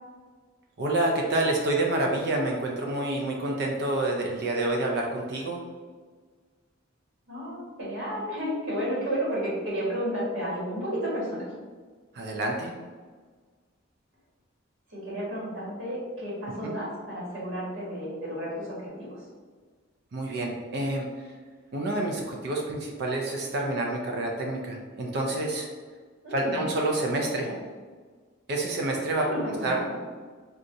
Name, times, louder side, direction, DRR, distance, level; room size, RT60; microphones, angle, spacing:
voice 1, 0.8-5.6 12.1-12.7 16.6-16.7 20.1-21.1 21.7-25.7 26.3-27.5 28.5-29.8, right 2 dB, 55° right, 0 dB, 0.4 m, -28 dB
voice 2, 7.3-11.4 14.9-19.3 26.2-26.6 27.4-27.5 28.9-29.9, equal, 85° right, -7 dB, 1.3 m, -32 dB
4.0 x 2.3 x 2.5 m, 1.5 s
head